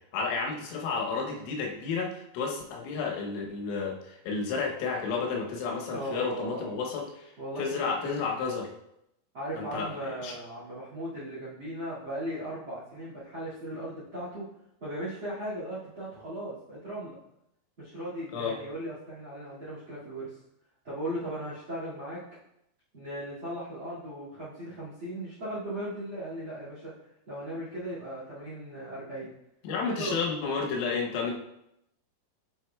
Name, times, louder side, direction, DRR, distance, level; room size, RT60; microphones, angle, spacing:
voice 1, 0.1-7.3 7.6-8.7 9.6-10.4 18.3-18.6 29.6-31.4, left 5 dB, 80° left, 0 dB, 3.3 m, -31 dB
voice 2, 5.9-6.8 7.4-8.2 9.3-14.4 14.8-17.2 17.8-20.3 20.8-22.2 22.9-26.9 27.3-29.3 30.0-30.2, right 1 dB, 45° right, -8 dB, 1.7 m, -37 dB
7.8 x 6.1 x 2.3 m, 0.80 s
omnidirectional pair, 5.5 m